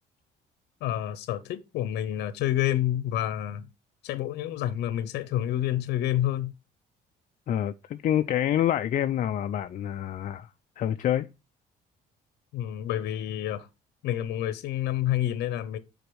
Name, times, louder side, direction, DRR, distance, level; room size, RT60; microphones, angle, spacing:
voice 1, 0.8-3.7 4.0-6.5 12.5-13.7 14.0-15.8, left 12 dB, 80° left, 0.8 m, -28 dB
voice 2, 7.5-10.5 10.8-11.3, left 11 dB, 50° left, 0.5 m, -27 dB
6.6 x 4.1 x 6.2 m
cardioid pair, 110°, 17 cm